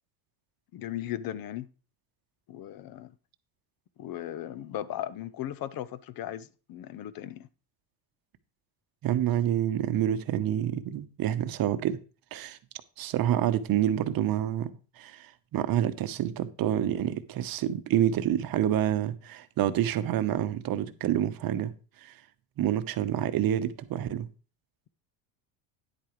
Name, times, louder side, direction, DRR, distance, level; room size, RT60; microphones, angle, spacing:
voice 1, 0.7-1.7 2.5-3.1 4.0-7.5, left 12 dB, 45° left, 0.7 m, -37 dB
voice 2, 9.0-12.0 12.3-12.6 13.0-14.7 15.0-21.7 22.0-22.1 22.6-24.3, right 11 dB, 45° right, 0.9 m, -28 dB
10.0 x 8.3 x 3.1 m
supercardioid pair, 105°, 49 cm